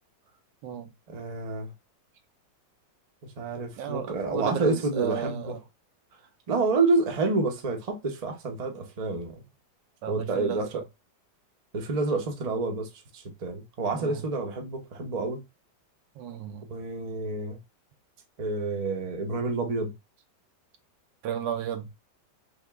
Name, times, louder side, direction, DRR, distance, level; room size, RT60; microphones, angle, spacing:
voice 1, 1.1-1.7 3.4-5.5 6.5-9.4 10.1-10.8 11.7-15.4 16.7-17.6 18.4-19.9, right 3 dB, 40° right, 0.5 m, -28 dB
voice 2, 3.8-5.6 10.0-10.8 13.9-14.2 16.2-16.7 21.2-21.9, right 9 dB, 80° right, 1.3 m, -33 dB
3.5 x 2.8 x 3.4 m
omnidirectional pair, 1.9 m